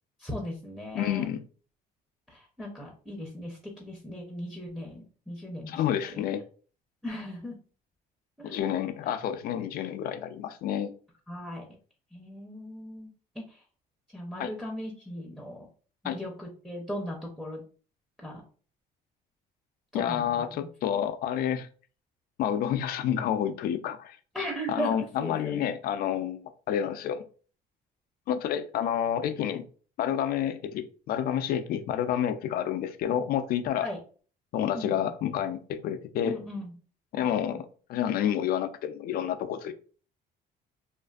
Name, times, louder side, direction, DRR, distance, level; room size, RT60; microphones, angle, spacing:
voice 1, 0.2-1.3 2.3-5.8 7.0-7.6 8.4-8.8 9.0-9.1 11.3-11.6 12.1-13.6 14.1-15.7 16.0-17.6 18.2-18.4 19.9-20.7 24.3-25.6 33.8-34.0 34.7-35.0 36.2-36.7, equal, ahead, -2 dB, 0.6 m, -38 dB
voice 2, 0.9-1.4 5.7-6.4 8.4-10.9 14.4-14.5 16.0-16.2 19.9-21.7 22.4-24.2 24.7-27.2 28.3-29.6 30.0-33.9 34.5-36.4 37.1-37.6 37.9-39.7, left 9 dB, 65° left, 10 dB, 0.4 m, -29 dB
2.5 x 2.4 x 2.3 m, 0.40 s
cardioid pair, 110°, 17 cm